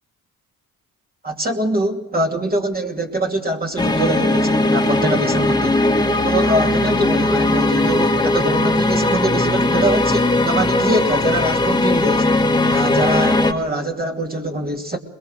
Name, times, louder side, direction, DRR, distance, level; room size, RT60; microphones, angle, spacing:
voice 1, 1.2-5.8 6.2-12.3 12.7-15.0, right 1 dB, 25° right, 2.8 m, -23 dB
sound 1, 3.8-13.5, left 2 dB, 10° left, 2.1 m, -18 dB
22.0 x 21.5 x 6.4 m
supercardioid pair, 65°, 36 cm